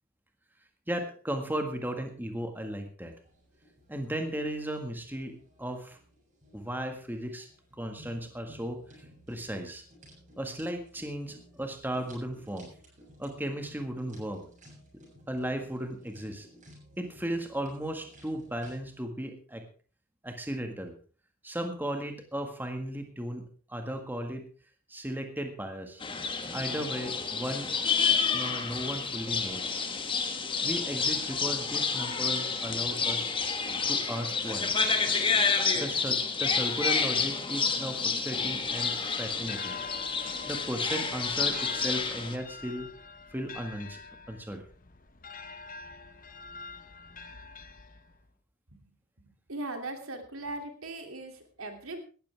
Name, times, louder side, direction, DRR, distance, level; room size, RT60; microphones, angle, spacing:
voice 1, 0.9-3.1 3.9-6.0 6.5-7.5 7.8-9.8 10.4-12.7 13.2-14.4 15.3-16.5 17.0-19.7 20.2-20.9 21.4-24.5 24.9-26.0 26.5-27.7 28.3-29.7 30.6-33.3 33.9-34.7 35.7-39.8 40.5-42.9 43.3-44.0 44.3-44.6, right 1 dB, 10° right, 5 dB, 1.8 m, -36 dB
sound 1, 3.1-18.8, equal, 35° right, 7.3 m, -56 dB
sound 2, 26.0-42.4, left 5 dB, 25° left, 1.5 m, -29 dB
sound 3, 38.4-48.3, left 5 dB, 40° left, 1.0 m, -45 dB
voice 2, 49.5-52.0, right 2 dB, 80° right, 5 dB, 2.8 m, -38 dB
17.5 x 13.5 x 3.5 m, 0.39 s
head